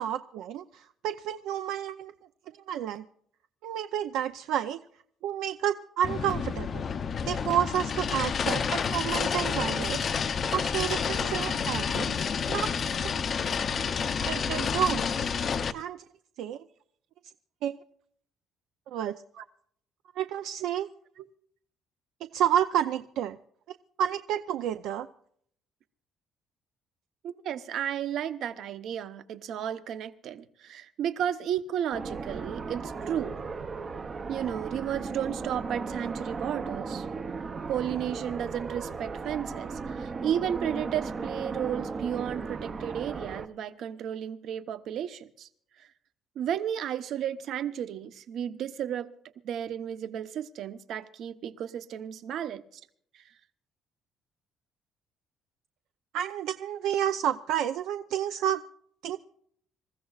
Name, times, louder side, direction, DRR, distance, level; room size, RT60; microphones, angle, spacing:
voice 1, 0.0-2.1 2.7-3.0 3.6-4.8 5.2-6.8 7.3-10.0 10.5-12.7 14.2-15.1 15.7-16.0 16.4-16.6 17.6-17.8 18.9-19.2 20.2-20.9 22.3-23.4 24.0-25.1 56.1-58.6 59.0-59.2, right 10 dB, 75° right, 0.5 m, -30 dB
sound 1, 6.0-15.7, left 6 dB, 30° left, 0.6 m, -29 dB
voice 2, 27.2-33.3 34.3-37.1 37.7-45.5 45.8-45.9 46.4-49.1 49.4-52.6, right 9 dB, 55° right, 0.9 m, -33 dB
sound 2, 31.9-43.5, right 4 dB, 25° right, 0.6 m, -36 dB
26.5 x 15.0 x 2.4 m
cardioid pair, 175°, 0 cm